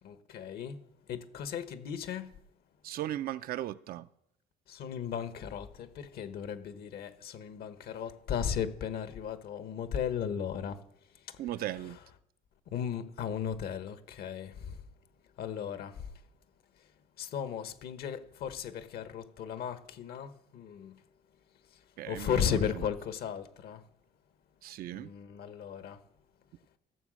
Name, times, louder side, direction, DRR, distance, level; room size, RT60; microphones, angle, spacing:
voice 1, 0.0-0.8 1.1-2.3 4.7-10.8 11.8-11.9 12.7-14.5 15.4-15.9 17.2-20.9 22.1-23.8 24.9-26.0, left 8 dB, 65° left, 1.2 m, -35 dB
voice 2, 2.8-4.1 11.4-12.0 22.0-22.8 24.6-25.1, right 13 dB, 60° right, 0.5 m, -37 dB
15.5 x 7.3 x 6.3 m
cardioid pair, 110°, 17 cm